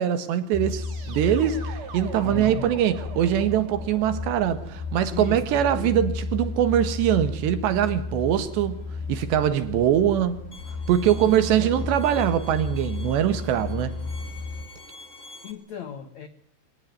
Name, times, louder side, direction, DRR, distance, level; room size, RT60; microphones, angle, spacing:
voice 1, 0.0-8.8 9.1-10.4 10.9-14.0, right 10 dB, 70° right, 3.5 m, -23 dB
sound 1, 0.5-14.7, left 3 dB, 60° left, 4.5 m, -33 dB
sound 2, 0.7-5.6, right 5 dB, 35° right, 2.6 m, -43 dB
voice 2, 2.2-2.7 5.1-6.0 11.3-11.9 15.4-16.3, left 6 dB, 80° left, 1.6 m, -37 dB
Bowed string instrument, 10.5-15.5, left 2 dB, 20° left, 2.5 m, -47 dB
25.0 x 18.5 x 9.3 m
omnidirectional pair, 5.6 m